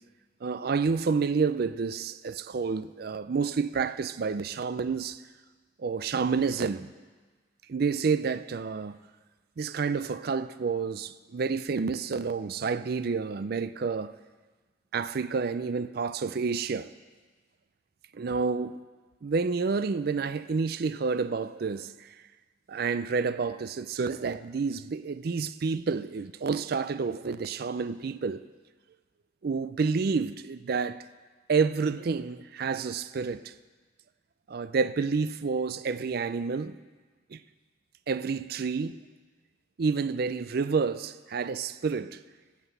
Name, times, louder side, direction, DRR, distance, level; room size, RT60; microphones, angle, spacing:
voice 1, 0.4-5.2 5.8-6.9 7.7-8.9 9.6-14.1 14.9-16.9 18.1-18.8 19.2-22.1 22.7-28.4 29.4-31.0 31.5-33.5 34.5-36.8 37.3-37.4 38.1-39.0 39.8-42.2, right 5 dB, 50° right, 0.4 m, -29 dB
15.5 x 5.9 x 8.2 m
head